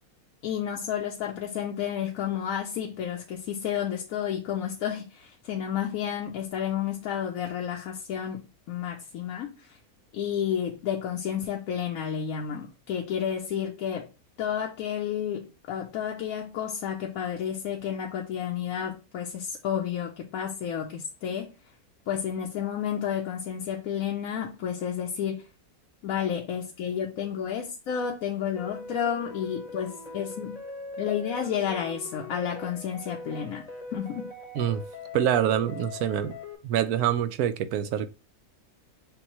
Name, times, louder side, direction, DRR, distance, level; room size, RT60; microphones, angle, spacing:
voice 1, 0.4-9.8 10.1-14.1 14.4-21.5 22.1-25.4 26.0-30.6 31.0-33.6 33.9-34.3, left 9 dB, 75° left, 1.0 m, -31 dB
sound 1, 28.6-36.6, left 2 dB, 30° left, 0.8 m, -41 dB
voice 2, 35.1-36.4 36.6-38.1, right 10 dB, 80° right, 1.1 m, -25 dB
6.9 x 2.3 x 3.0 m
omnidirectional pair, 1.6 m